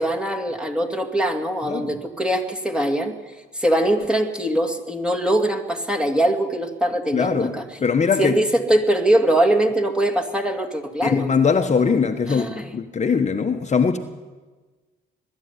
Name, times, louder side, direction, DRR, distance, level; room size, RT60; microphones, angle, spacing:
voice 1, 0.0-3.1 3.5-7.6 8.2-11.3 12.3-12.7, right 1 dB, 5° right, 2 dB, 2.4 m, -22 dB
voice 2, 1.6-2.0 7.1-7.5 7.8-8.4 11.0-14.0, left 5 dB, 35° left, 5 dB, 1.2 m, -21 dB
20.5 x 13.0 x 9.8 m, 1.3 s
cardioid pair, 90°, 20 cm